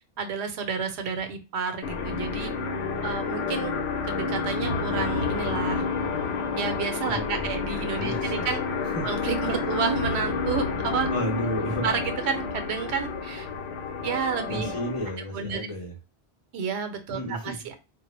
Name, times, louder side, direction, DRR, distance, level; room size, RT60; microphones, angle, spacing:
voice 1, 0.2-2.5 3.0-3.7 4.0-5.8 6.6-8.6 9.0-11.1 11.8-13.5 14.0-14.7 15.3-15.6 16.5-17.7, right 6 dB, 80° right, 7 dB, 0.9 m, -30 dB
sound 1, 1.8-15.2, left 4 dB, 90° left, 0.8 m, -30 dB
voice 2, 7.1-7.5 8.0-8.5 8.8-9.1 9.4-9.6 11.1-11.9 14.5-15.9 17.1-17.6, equal, 40° left, 0 dB, 0.5 m, -32 dB
2.1 x 2.0 x 3.0 m, 0.30 s
omnidirectional pair, 1.1 m